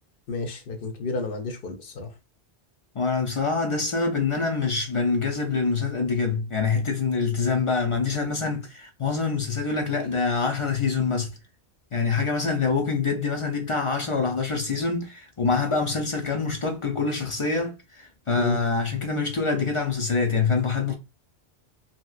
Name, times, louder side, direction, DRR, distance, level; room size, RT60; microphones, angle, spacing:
voice 1, 0.3-2.1 18.4-18.6, left 3 dB, 60° left, 0.8 m, -31 dB
voice 2, 2.9-11.3 11.9-21.0, left 4 dB, 45° left, 0.4 m, -25 dB
2.9 x 2.8 x 2.3 m
omnidirectional pair, 1.1 m